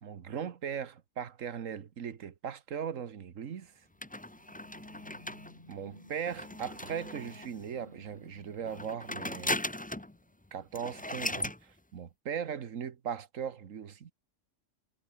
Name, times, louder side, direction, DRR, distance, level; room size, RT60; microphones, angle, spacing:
voice 1, 0.0-3.7 5.7-9.6 10.5-14.1, right 8 dB, 85° right, 1.6 m, -39 dB
sound 1, 3.8-10.3, left 1 dB, 35° left, 6.1 m, -58 dB
sound 2, 4.0-7.7 8.6-10.2 10.4-10.5 10.7-11.6, left 1 dB, 10° left, 0.7 m, -38 dB
omnidirectional pair, 1.3 m